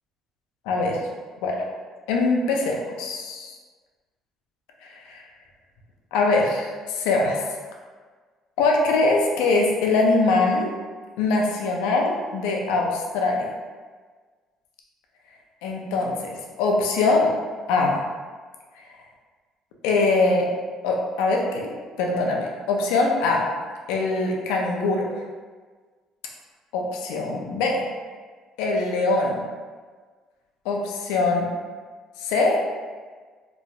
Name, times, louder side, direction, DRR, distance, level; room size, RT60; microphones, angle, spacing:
voice 1, 0.7-1.0 1.4-1.6 2.1-3.6 4.8-5.2 6.1-7.4 8.6-10.7 11.2-13.5 15.6-17.3 17.7-18.0 19.8-20.5 20.8-21.7 22.0-23.5 23.9-25.1 26.7-27.9 28.6-29.4 30.6-31.5 32.2-32.6, left 3 dB, 90° left, 0 dB, 0.4 m, -22 dB
3.0 x 2.2 x 2.7 m, 1.5 s
supercardioid pair, 90°, 0 cm